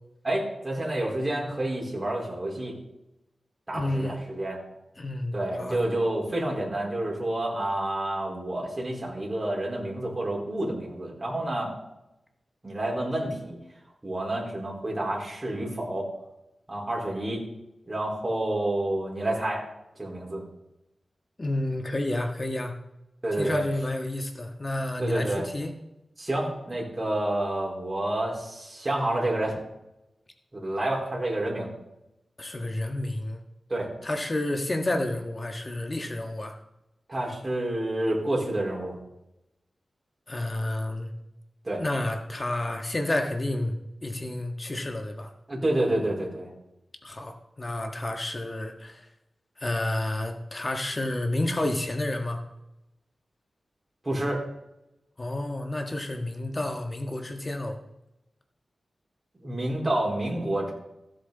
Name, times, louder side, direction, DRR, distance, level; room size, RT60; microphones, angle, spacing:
voice 1, 0.2-2.7 3.7-4.6 5.3-11.7 12.6-13.6 14.0-16.1 16.7-17.4 17.9-19.6 20.0-20.4 23.2-23.6 25.0-25.5 26.2-29.6 30.5-31.7 33.7-33.9 37.1-38.9 41.6-41.8 45.5-46.5 54.0-54.4 59.4-60.7, right 1 dB, 30° right, -3 dB, 4.3 m, -29 dB
voice 2, 3.7-4.2 5.0-5.8 21.4-22.8 23.3-25.7 32.4-33.4 34.0-36.5 40.3-41.1 41.7-43.8 44.0-45.3 47.0-49.0 49.6-52.4 55.2-57.8, left 1 dB, 35° left, 4 dB, 1.7 m, -30 dB
15.5 x 7.9 x 4.1 m, 0.89 s
cardioid pair, 55°, 0 cm